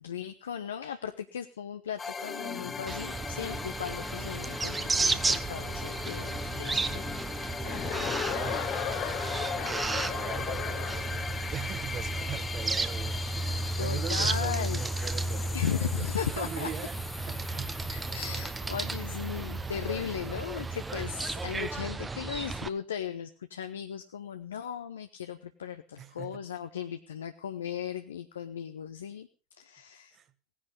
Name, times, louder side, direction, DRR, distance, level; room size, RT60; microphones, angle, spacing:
voice 1, 0.0-7.0 7.4-7.7 8.0-8.1 13.8-14.8 15.5-16.7 17.9-29.3 29.6-30.2, left 8 dB, 70° left, 0.7 m, -37 dB
sound 1, 2.0-20.5, left 5 dB, 20° left, 1.0 m, -39 dB
sound 2, 2.9-22.7, right 3 dB, 15° right, 1.0 m, -33 dB
Chuckle chortle, 7.6-11.4, left 11 dB, 45° left, 1.3 m, -36 dB
voice 2, 7.6-8.8 9.6-11.0 11.5-18.3 26.0-26.4 30.1-30.3, right 9 dB, 35° right, 1.3 m, -42 dB
17.5 x 10.5 x 5.5 m
figure-of-eight pair, 75°, 0 cm